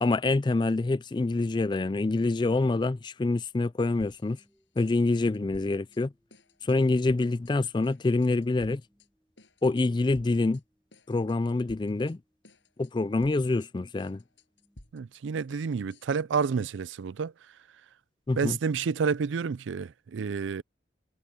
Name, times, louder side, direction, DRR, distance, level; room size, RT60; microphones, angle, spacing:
voice 1, 0.0-4.4 4.8-6.1 6.6-8.8 9.6-10.6 11.1-12.2 12.8-14.2 18.3-18.6, left 2 dB, 25° left, 0.3 m, -26 dB
sound 1, 3.8-16.0, equal, ahead, 4.4 m, -72 dB
sound 2, 4.0-4.5 4.8-6.0 6.3-6.8 7.1-7.5 7.8-9.1 9.4-9.8 10.1-10.6 10.9-12.2 12.4-12.9 13.2-16.2, left 1 dB, 85° left, 6.6 m, -54 dB
voice 2, 14.9-17.3 18.4-20.6, right 5 dB, 85° right, 0.4 m, -29 dB
head